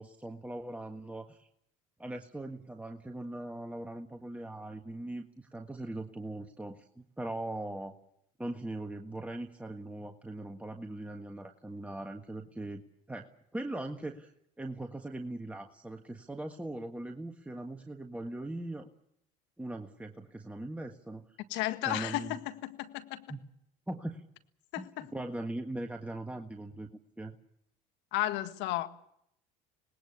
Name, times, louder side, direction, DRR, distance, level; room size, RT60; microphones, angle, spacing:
voice 1, 0.0-1.5 2.0-7.9 8.4-12.8 13.1-14.3 14.6-18.9 19.6-21.2 21.8-22.4 23.3-23.4 23.9-24.2 24.8-26.9 27.2-27.4, right 1 dB, 5° right, 4 dB, 1.6 m, -40 dB
voice 2, 21.5-23.2 24.7-25.1 28.1-28.9, left 15 dB, 65° left, 9 dB, 1.7 m, -33 dB
26.0 x 19.5 x 7.2 m, 0.72 s
hypercardioid pair, 70°, 19 cm